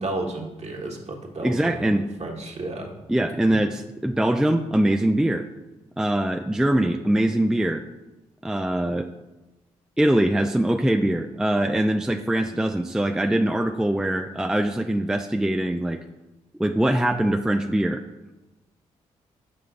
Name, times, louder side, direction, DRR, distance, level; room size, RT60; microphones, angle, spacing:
voice 1, 0.0-2.9, right 2 dB, 45° right, 0 dB, 1.5 m, -32 dB
voice 2, 1.4-2.0 3.1-5.4 6.0-7.8 8.4-9.1 10.0-16.0 16.6-18.0, right 1 dB, 5° right, 5 dB, 0.4 m, -22 dB
7.6 x 5.7 x 2.5 m, 1.0 s
hypercardioid pair, 40°, 15 cm